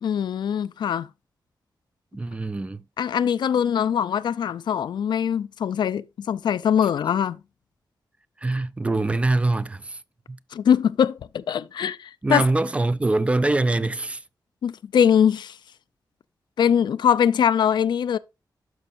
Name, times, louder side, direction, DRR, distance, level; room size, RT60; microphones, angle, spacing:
voice 1, 0.0-1.1 3.0-7.4 10.5-12.4 14.6-15.6 16.6-18.2, left 8 dB, 75° left, 0.4 m, -22 dB
voice 2, 2.1-2.8 8.4-10.0 10.3-10.4 12.2-14.2, right 2 dB, 15° right, 0.4 m, -23 dB
12.0 x 5.4 x 2.5 m
wide cardioid pair, 155°, 8 cm